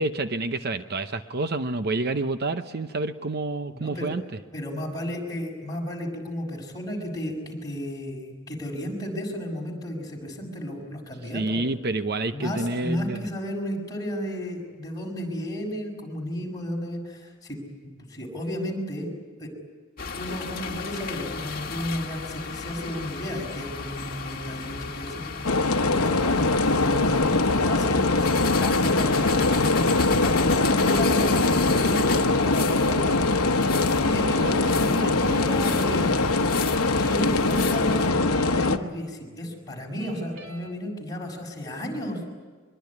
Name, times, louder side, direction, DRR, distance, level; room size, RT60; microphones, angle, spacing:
voice 1, 0.0-4.4 11.3-13.3 34.1-34.7 35.0-35.4, right 2 dB, 45° right, 9 dB, 0.8 m, -29 dB
voice 2, 3.7-4.1 4.5-11.6 12.3-19.1 19.4-19.5 20.1-26.4 26.8-33.5 34.1-36.3 37.0-42.2, equal, 15° left, -1 dB, 6.0 m, -33 dB
sound 1, 20.0-38.1, left 5 dB, 40° left, 1.8 m, -33 dB
sound 2, 25.4-38.8, left 3 dB, 80° left, 1.1 m, -22 dB
sound 3, 34.6-40.7, right 3 dB, 65° right, 3.7 m, -47 dB
24.0 x 22.5 x 9.7 m, 1.5 s
head